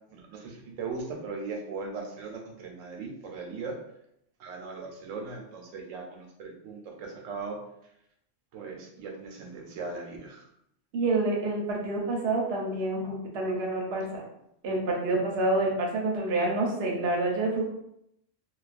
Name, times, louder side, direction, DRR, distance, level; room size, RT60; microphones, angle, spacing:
voice 1, 0.0-3.8 4.4-7.6 8.5-10.4, right 4 dB, 90° right, 1 dB, 1.0 m, -39 dB
voice 2, 10.9-14.2 14.6-17.7, right 2 dB, 65° right, -1 dB, 0.8 m, -28 dB
2.3 x 2.3 x 2.4 m, 0.78 s
omnidirectional pair, 1.3 m